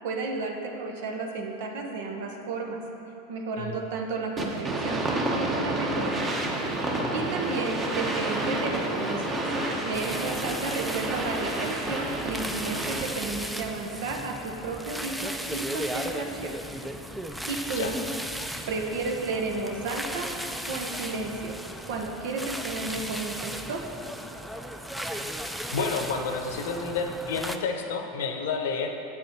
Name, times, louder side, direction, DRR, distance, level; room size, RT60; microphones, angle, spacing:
voice 1, 0.0-2.8 3.3-6.2 7.1-9.4 9.8-16.5 17.5-17.9 18.7-20.3 20.7-21.6 21.9-23.8, right 3 dB, 70° right, 2 dB, 1.0 m, -32 dB
sound 1, 4.4-13.3, right 2 dB, 25° right, 1.1 m, -29 dB
voice 2, 6.9-7.3 17.8-17.9 25.7-28.9, left 4 dB, 75° left, 5 dB, 0.8 m, -30 dB
sound 2, 9.9-27.6, equal, 5° right, 0.4 m, -36 dB
8.2 x 6.1 x 4.5 m, 3.0 s
hypercardioid pair, 105°, 0 cm